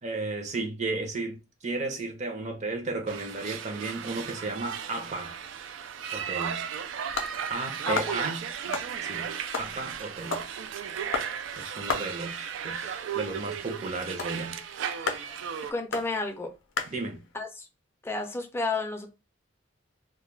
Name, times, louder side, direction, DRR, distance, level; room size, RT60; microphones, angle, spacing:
voice 1, 0.0-5.4 6.1-6.6 7.5-8.4 9.0-10.4 11.6-14.6 16.9-17.2, right 3 dB, 40° right, 0.6 m, -34 dB
sound 1, 3.1-15.7, right 8 dB, 75° right, 0.3 m, -35 dB
sound 2, 6.7-17.4, left 4 dB, 70° left, 0.5 m, -37 dB
voice 2, 15.7-16.5 17.3-17.7 18.0-19.1, left 3 dB, 15° left, 0.4 m, -31 dB
2.3 x 2.1 x 3.1 m
head